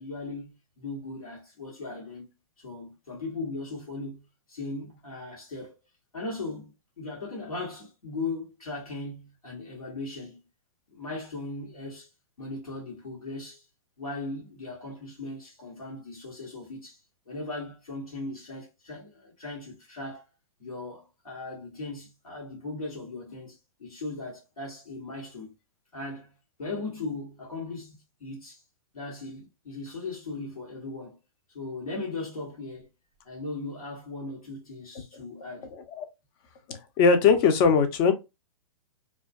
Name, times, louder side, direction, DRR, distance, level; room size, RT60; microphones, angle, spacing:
voice 1, 0.0-2.3 2.6-5.8 6.1-10.4 10.9-12.1 12.4-13.7 14.0-17.0 17.3-20.3 20.6-25.5 25.9-26.3 26.6-28.6 28.9-31.2 31.5-32.9 33.2-35.7, left 2 dB, 90° left, 1.1 m, -38 dB
voice 2, 36.7-38.1, left 5 dB, 40° left, 0.6 m, -20 dB
2.4 x 2.3 x 2.3 m
hypercardioid pair, 115°, 18 cm